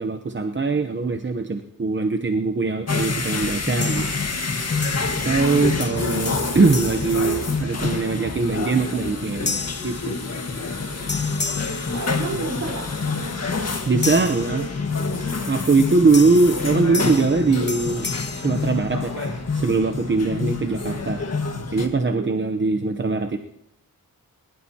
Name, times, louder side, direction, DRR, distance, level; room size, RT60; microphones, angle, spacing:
voice 1, 0.0-4.1 5.2-10.2 13.9-14.7 15.5-18.1 18.4-21.2 21.7-23.4, right 3 dB, 35° right, 6 dB, 0.8 m, -21 dB
sound 1, 2.9-21.9, left 4 dB, 45° left, 1.7 m, -27 dB
sound 2, 3.8-4.5 4.8-5.5 5.8-8.0 8.5-8.8 9.5-10.8 11.1-12.7 14.0-15.2 16.1-19.4, left 4 dB, 30° left, 0.9 m, -34 dB
voice 2, 5.2-5.7 11.1-11.5 11.9-12.9 22.0-22.4, right 2 dB, 55° right, 1 dB, 4.7 m, -32 dB
21.0 x 20.0 x 2.9 m, 0.77 s
wide cardioid pair, 160°, 35 cm